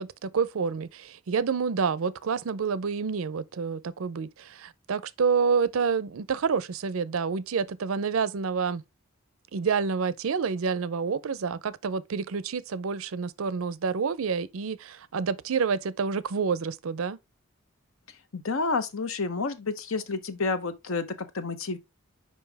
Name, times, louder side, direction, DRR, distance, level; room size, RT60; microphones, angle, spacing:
voice 1, 0.0-8.8 9.5-17.2, right 5 dB, 70° right, 0.5 m, -28 dB
voice 2, 18.3-21.8, left 4 dB, 65° left, 0.8 m, -30 dB
5.4 x 5.2 x 3.4 m
head